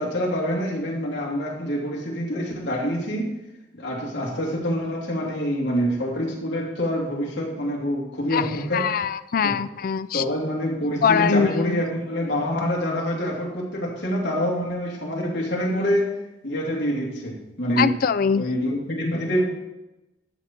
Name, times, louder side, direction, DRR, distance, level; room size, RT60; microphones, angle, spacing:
voice 1, 0.0-3.3 3.7-8.9 9.4-9.6 10.1-16.1 16.4-18.0 18.3-19.4, equal, 65° left, -2 dB, 2.8 m, -26 dB
voice 2, 8.7-10.2 11.0-11.8 17.8-18.4, left 6 dB, 50° left, 15 dB, 0.4 m, -22 dB
12.5 x 4.3 x 7.5 m, 0.96 s
head